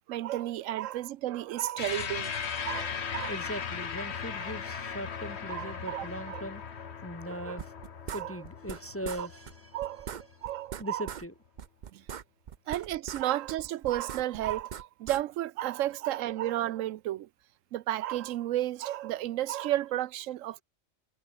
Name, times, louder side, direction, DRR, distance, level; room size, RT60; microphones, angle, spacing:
voice 1, 0.1-2.3 2.6-3.3 5.5-6.4 7.3-7.6 8.1-8.4 9.2-9.3 9.7-11.1 11.9-12.0 12.7-17.3 17.7-20.6, right 13 dB, 75° right, 1.0 m, -33 dB
sound 1, 1.7-4.4 5.1-5.2 6.3-6.4, left 2 dB, 70° left, 6.0 m, -54 dB
sound 2, 1.8-10.5, left 6 dB, 55° left, 1.5 m, -38 dB
voice 2, 3.3-6.6 7.0-7.7 8.1-9.8 10.1-10.2 10.8-11.3, equal, 10° left, 1.5 m, -39 dB
sound 3, 7.6-8.8 9.0-9.2 9.5-9.6 9.8-11.3 11.6-13.2 13.5-15.2, right 8 dB, 45° right, 0.6 m, -41 dB
omnidirectional pair, 1.4 m